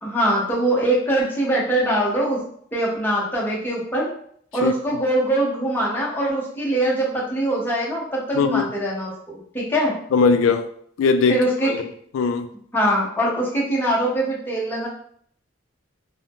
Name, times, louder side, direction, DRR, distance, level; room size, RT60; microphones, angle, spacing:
voice 1, 0.0-2.4 2.7-4.1 4.5-9.9 11.3-11.7 12.7-14.9, right 1 dB, 10° left, -5 dB, 0.7 m, -22 dB
voice 2, 10.1-10.7 11.0-11.4 11.7-11.8 12.1-12.5, left 5 dB, 85° left, 9 dB, 0.3 m, -19 dB
2.5 x 2.0 x 3.4 m, 0.62 s
head